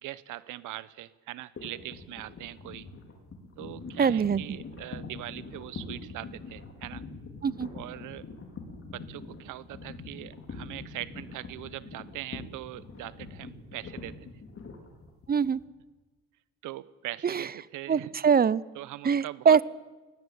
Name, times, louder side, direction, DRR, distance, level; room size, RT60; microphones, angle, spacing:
voice 1, 0.0-2.9 3.6-7.0 7.7-8.2 8.8-14.3 16.6-18.1 18.7-19.6, right 15 dB, 85° right, 18 dB, 0.9 m, -41 dB
sound 1, 1.6-15.6, left 4 dB, 45° left, 4.6 m, -43 dB
voice 2, 4.0-4.6 7.4-7.7 15.3-15.6 17.2-17.4 17.9-18.6 19.0-19.6, right 7 dB, 30° right, 21 dB, 0.6 m, -23 dB
18.0 x 15.5 x 9.4 m, 1.2 s
cardioid pair, 90°, 30 cm